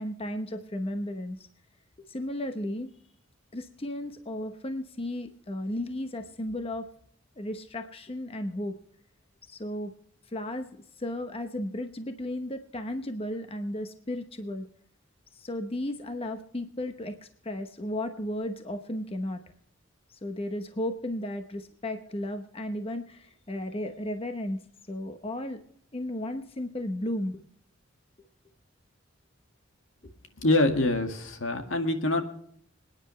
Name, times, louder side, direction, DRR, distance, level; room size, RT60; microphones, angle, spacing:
voice 1, 0.0-1.5 2.1-2.9 3.5-6.9 7.4-8.8 9.5-9.9 10.3-10.7 11.0-14.7 15.3-19.4 20.2-24.6 24.9-25.6 25.9-27.4, left 1 dB, 30° left, 7 dB, 0.9 m, -34 dB
voice 2, 30.4-32.2, left 2 dB, 80° left, 5 dB, 1.9 m, -25 dB
26.5 x 9.9 x 3.2 m, 0.65 s
head